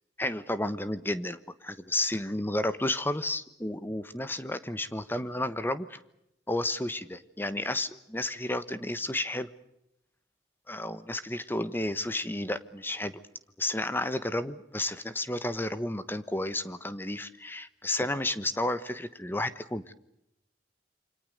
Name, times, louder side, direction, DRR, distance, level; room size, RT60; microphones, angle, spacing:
voice 1, 0.2-6.0 6.5-9.5 10.7-13.2 13.6-19.9, left 1 dB, 10° left, 13 dB, 1.2 m, -32 dB
28.0 x 25.5 x 6.7 m, 0.83 s
head